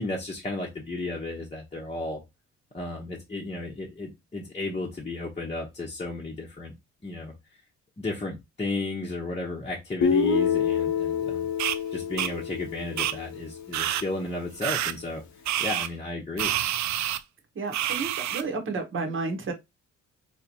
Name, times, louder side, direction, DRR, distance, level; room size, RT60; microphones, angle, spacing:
voice 1, 0.0-2.2 2.7-6.7 7.0-7.3 8.0-11.5 11.9-15.2 15.6-16.6, left 2 dB, 20° left, 1.0 m, -33 dB
Guitar, 10.0-14.0, left 6 dB, 70° left, 0.9 m, -27 dB
sound 1, 11.6-11.8 12.2-12.3 13.0-13.1 13.7-14.0 14.6-14.9 15.5-15.9 16.4-17.2 17.7-18.4, right 12 dB, 65° right, 0.4 m, -27 dB
voice 2, 17.5-19.5, right 4 dB, 40° right, 1.1 m, -31 dB
3.9 x 2.9 x 2.9 m
cardioid pair, 90°, 30 cm